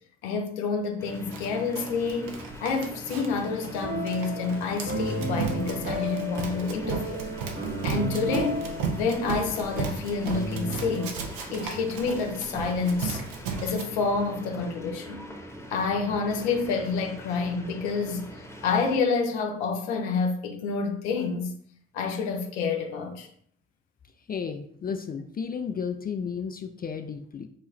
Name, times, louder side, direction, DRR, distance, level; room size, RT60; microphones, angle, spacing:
voice 1, 0.2-7.3 7.8-8.7 8.9-11.1 11.5-13.2 13.6-15.2 15.7-21.5 21.9-23.3, left 4 dB, 80° left, 0.6 m, -28 dB
sound 1, 1.0-19.0, equal, 10° left, 0.9 m, -43 dB
Run, 1.3-13.8, right 5 dB, 75° right, 0.6 m, -35 dB
sound 2, 3.6-11.1, right 1 dB, 40° right, 1.4 m, -34 dB
voice 2, 24.3-27.5, left 6 dB, 30° left, 0.4 m, -33 dB
4.7 x 2.3 x 3.1 m
hypercardioid pair, 40°, 34 cm